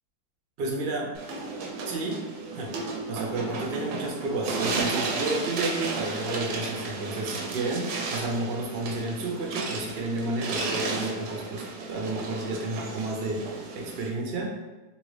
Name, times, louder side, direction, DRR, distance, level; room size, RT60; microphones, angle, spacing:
voice 1, 0.6-1.1 1.9-2.2 2.5-2.7 3.1-14.5, right 2 dB, 65° right, -1 dB, 0.6 m, -31 dB
sound 1, 1.1-14.1, right 3 dB, 85° right, 1.1 m, -33 dB
2.8 x 2.6 x 3.1 m, 1.2 s
omnidirectional pair, 1.6 m